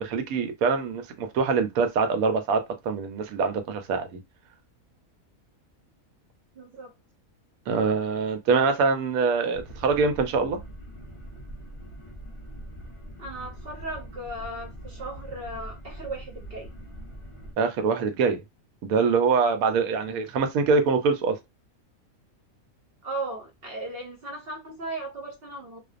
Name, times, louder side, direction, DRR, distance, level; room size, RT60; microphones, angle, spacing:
voice 1, 0.0-4.2 7.7-10.6 17.6-18.4 18.8-21.4, right 5 dB, 90° right, 1.1 m, -24 dB
voice 2, 6.5-6.9 13.2-16.7 20.1-20.3 23.0-25.8, right 2 dB, 55° right, 0.7 m, -36 dB
sound 1, 9.5-17.5, right 1 dB, 50° left, 0.3 m, -42 dB
2.5 x 2.1 x 2.4 m
omnidirectional pair, 1.5 m